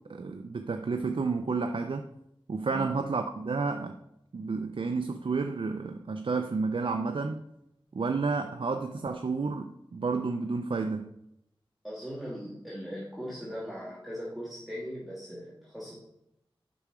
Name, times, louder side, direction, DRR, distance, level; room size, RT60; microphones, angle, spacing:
voice 1, 0.0-2.1 2.5-4.0 4.3-7.4 7.9-11.1, right 4 dB, 65° right, 6 dB, 0.5 m, -31 dB
voice 2, 11.8-16.0, equal, ahead, -7 dB, 2.1 m, -39 dB
6.8 x 5.8 x 4.9 m, 0.81 s
wide cardioid pair, 50°, 10 cm